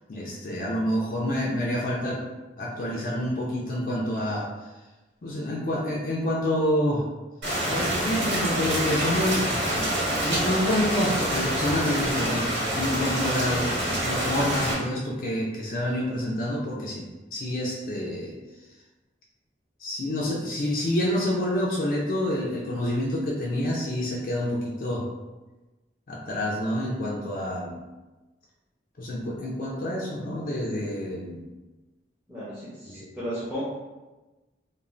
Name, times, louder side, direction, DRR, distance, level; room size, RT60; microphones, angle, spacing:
voice 1, 0.1-2.2 2.6-4.5 5.2-7.1 7.6-9.9 10.2-18.4 19.8-25.1 26.1-27.7 29.0-31.4 32.9-33.1, left 1 dB, 50° left, -4 dB, 0.4 m, -28 dB
Rain, 7.4-14.7, right 1 dB, 90° right, 1.3 m, -26 dB
voice 2, 32.3-33.6, equal, 10° right, -13 dB, 0.6 m, -34 dB
2.5 x 2.1 x 3.1 m, 1.1 s
head